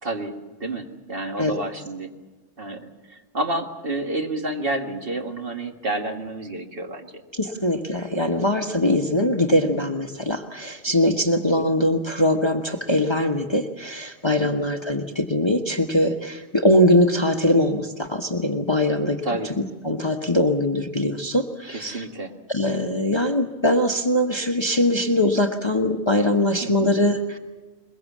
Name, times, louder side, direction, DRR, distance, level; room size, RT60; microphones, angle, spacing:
voice 1, 0.0-2.1 2.6-7.2 11.5-11.7 19.2-19.5 21.7-22.3 26.6-26.9, right 2 dB, 45° right, 3 dB, 2.0 m, -30 dB
voice 2, 7.4-19.2 19.8-22.0 22.5-27.4, left 1 dB, 20° left, 4 dB, 1.2 m, -22 dB
22.5 x 21.5 x 7.4 m, 1.2 s
omnidirectional pair, 1.4 m